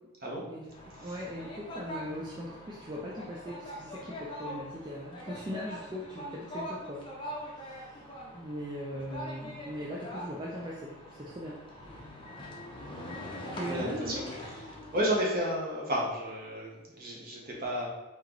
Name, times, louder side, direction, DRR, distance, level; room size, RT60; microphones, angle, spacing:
sound 1, 0.7-15.0, equal, 20° left, 0.7 m, -43 dB
voice 1, 1.0-7.1 7.6-8.0 8.3-11.6 13.5-14.2, equal, 20° right, -4 dB, 0.4 m, -39 dB
voice 2, 13.7-14.3 14.9-17.9, equal, 40° right, -3 dB, 1.1 m, -32 dB
4.4 x 2.9 x 3.8 m, 1.1 s
head